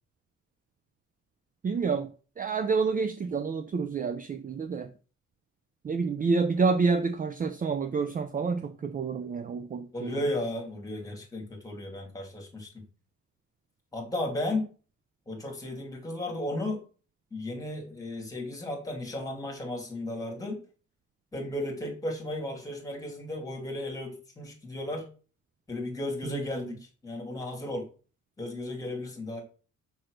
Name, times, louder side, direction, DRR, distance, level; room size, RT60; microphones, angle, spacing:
voice 1, 1.6-2.1 2.4-4.9 5.8-10.2 26.2-26.7, right 4 dB, 25° right, 0.5 m, -28 dB
voice 2, 9.9-12.8 13.9-14.6 15.3-16.8 17.3-20.6 21.3-25.1 25.7-27.9 28.4-29.4, left 1 dB, 10° left, 2.8 m, -34 dB
6.3 x 6.0 x 6.5 m
cardioid pair, 175°, 32 cm